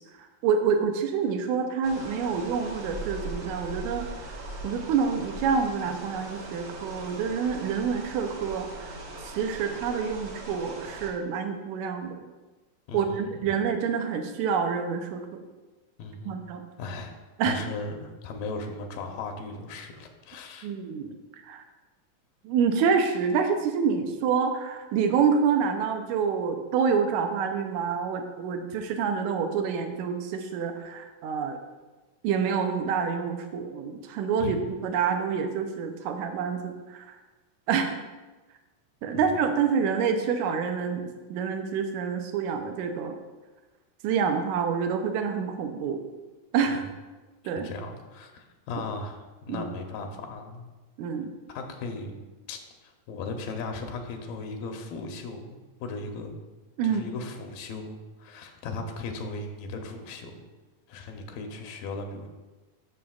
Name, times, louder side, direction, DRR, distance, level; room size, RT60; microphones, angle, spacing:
voice 1, 0.4-8.9 9.2-12.2 12.9-15.4 16.2-16.6 17.4-17.6 20.6-21.1 21.4-21.6 22.4-31.6 32.2-37.2 37.7-38.0 39.0-43.2 44.0-46.0 46.5-46.9 47.4-47.7 49.5-49.7 51.0-51.3 56.8-57.0, right 6 dB, 85° right, 6 dB, 1.7 m, -27 dB
sound 1, 1.8-11.1, right 2 dB, 60° right, 1.5 m, -40 dB
voice 2, 12.9-13.3 16.0-16.4 16.8-17.2 17.5-20.7 34.4-34.6 39.1-39.4 46.7-46.8 47.6-50.7 51.5-56.4 56.8-60.3 60.9-62.3, left 3 dB, 90° left, 4 dB, 2.6 m, -37 dB
11.5 x 6.4 x 2.3 m, 1.2 s
omnidirectional pair, 4.0 m